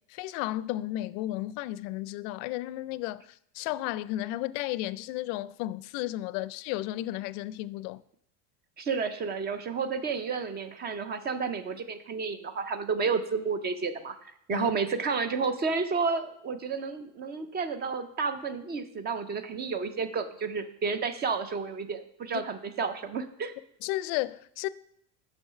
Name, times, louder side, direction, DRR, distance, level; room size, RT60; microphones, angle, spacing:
voice 1, 0.1-3.2 3.5-8.0 14.5-14.7 23.8-24.7, left 16 dB, 60° left, 0.5 m, -33 dB
voice 2, 8.8-14.1 14.5-23.5, right 5 dB, 20° right, 0.4 m, -31 dB
7.9 x 6.3 x 5.6 m
supercardioid pair, 145°, 49 cm